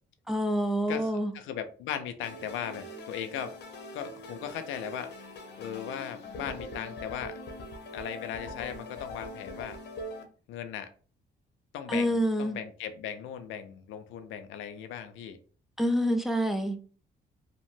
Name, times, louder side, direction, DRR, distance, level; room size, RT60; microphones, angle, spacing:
voice 1, 0.3-1.3 11.9-12.6 15.8-16.8, equal, ahead, 0.5 m, -27 dB
voice 2, 0.9-3.5 3.9-5.1 5.6-7.4 7.9-9.8 10.5-10.9 11.7-15.4, left 9 dB, 90° left, 0.4 m, -38 dB
sound 1, 2.2-10.2, left 1 dB, 60° left, 0.8 m, -42 dB
2.8 x 2.1 x 3.1 m
cardioid pair, 90°, 20 cm